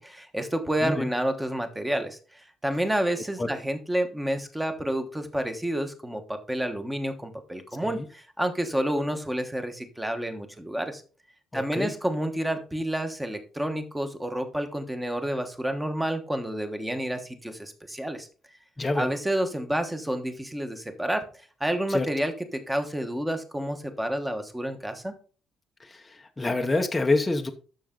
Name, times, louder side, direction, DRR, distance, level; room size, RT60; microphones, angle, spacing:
voice 1, 0.0-11.0 11.5-18.3 18.9-21.2 21.6-25.2, right 1 dB, 5° right, 7 dB, 1.2 m, -29 dB
voice 2, 11.5-11.9 18.8-19.1 21.9-22.1 25.8-27.5, left 2 dB, 10° left, 3 dB, 0.8 m, -27 dB
12.0 x 6.5 x 3.8 m, 0.39 s
cardioid pair, 160°, 0 cm